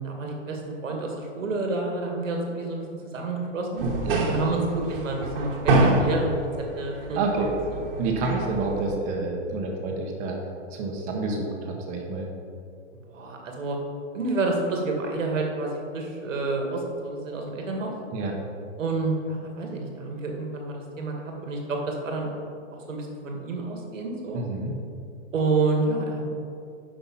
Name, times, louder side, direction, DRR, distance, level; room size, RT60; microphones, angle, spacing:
voice 1, 0.0-2.8 3.1-3.9 4.3-7.4 13.1-13.8 14.1-17.9 18.8-22.3 22.9-24.4 25.3-26.2, right 3 dB, 85° right, 1 dB, 2.3 m, -29 dB
sound 1, 3.8-8.9, right 2 dB, 45° right, 1.5 m, -26 dB
voice 2, 7.1-7.5 8.0-10.4 10.7-12.3 18.1-18.3 24.3-24.8, right 3 dB, 20° right, 1 dB, 1.1 m, -28 dB
10.0 x 5.8 x 5.5 m, 2.5 s
hypercardioid pair, 160°, 37 cm